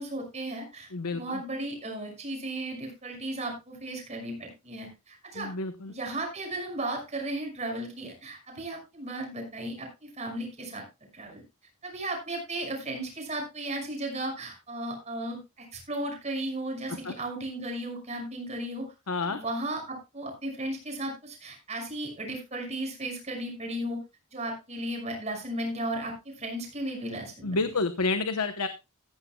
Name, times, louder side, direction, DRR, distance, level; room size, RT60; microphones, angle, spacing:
voice 1, 0.0-5.5 5.9-10.8 11.1-11.4 11.8-18.9 19.2-24.0 24.3-27.7, right 1 dB, 30° right, 2 dB, 5.8 m, -35 dB
voice 2, 0.9-1.4 5.3-5.9 16.9-17.1 19.1-19.4 27.4-28.7, left 3 dB, 80° left, 9 dB, 1.0 m, -29 dB
14.5 x 14.0 x 2.3 m, 0.26 s
head